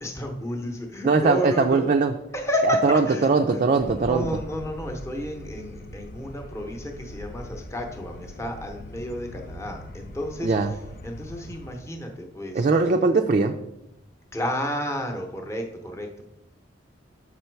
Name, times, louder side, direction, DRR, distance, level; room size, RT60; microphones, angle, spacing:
voice 1, 0.0-1.9 2.3-3.3 4.0-10.5 11.0-12.6 14.3-16.2, left 1 dB, 15° left, 3 dB, 0.8 m, -31 dB
voice 2, 1.0-2.1 2.8-4.3 10.4-10.7 12.5-13.5, right 4 dB, 40° right, 3 dB, 0.4 m, -20 dB
sound 1, 3.8-11.8, left 1 dB, 45° left, 0.5 m, -41 dB
6.0 x 5.6 x 4.5 m, 0.87 s
head